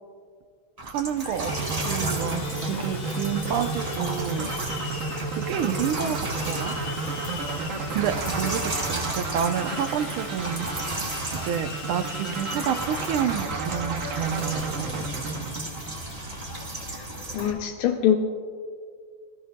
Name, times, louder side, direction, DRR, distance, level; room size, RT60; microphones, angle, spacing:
sound 1, 0.8-17.5, right 2 dB, 25° right, 0.9 m, -35 dB
voice 1, 0.8-4.5 5.3-6.2 6.4-6.7 7.9-11.1 11.4-15.5, right 9 dB, 85° right, 9 dB, 1.6 m, -29 dB
Sawing, 1.1-17.6, left 4 dB, 70° left, 2.0 m, -40 dB
sound 2, 1.5-16.4, right 3 dB, 55° right, 0.9 m, -33 dB
voice 2, 17.3-18.2, left 10 dB, 90° left, 3 dB, 1.6 m, -23 dB
22.5 x 13.0 x 2.2 m, 2.1 s
omnidirectional pair, 2.3 m